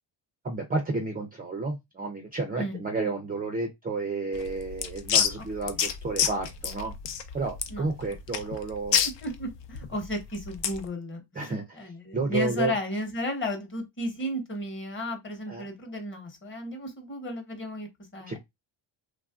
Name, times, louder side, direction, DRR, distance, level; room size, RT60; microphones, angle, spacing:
voice 1, 0.4-6.9 7.3-9.0 11.4-12.7 15.5-15.7 18.3-18.4, right 3 dB, 20° right, 0.4 m, -31 dB
sound 1, 4.3-10.9, left 8 dB, 65° left, 0.6 m, -29 dB
voice 2, 9.0-18.4, left 1 dB, 25° left, 0.9 m, -34 dB
3.2 x 2.4 x 2.3 m
cardioid pair, 150°, 47 cm